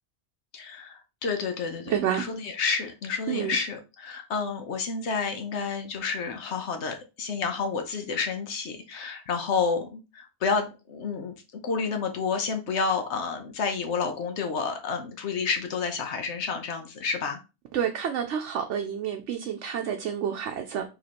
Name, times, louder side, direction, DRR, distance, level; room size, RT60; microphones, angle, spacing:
voice 1, 0.5-11.3 11.6-17.4, left 5 dB, 75° left, 1.1 m, -30 dB
voice 2, 1.9-2.3 3.3-3.6 17.7-20.8, right 9 dB, 90° right, 0.9 m, -29 dB
5.1 x 3.1 x 2.9 m
omnidirectional pair, 1.2 m